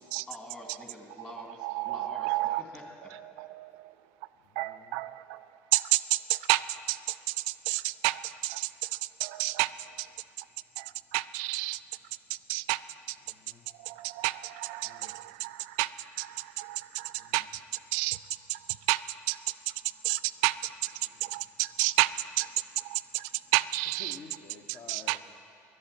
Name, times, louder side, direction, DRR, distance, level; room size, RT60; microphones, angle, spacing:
voice 1, 0.3-3.1, left 1 dB, 20° left, 1 dB, 2.5 m, -46 dB
voice 2, 1.6-2.6 3.1-4.0 4.6-10.5 10.8-11.8 12.3-12.8 13.1-13.2 13.7-18.2 18.5-19.7 20.0-24.2 24.9-25.2, right 20 dB, 75° right, 17 dB, 0.4 m, -31 dB
voice 3, 4.3-5.0 9.1-9.2 10.5-11.1 12.2-12.5 13.2-14.2 14.8-15.8 16.3-17.5 18.6-18.7 19.8-20.2 21.0-21.6 22.9-23.5 24.0-25.2, left 4 dB, 50° left, 3 dB, 1.0 m, -55 dB
11.5 x 8.5 x 9.9 m, 2.6 s
hypercardioid pair, 75°, 8 cm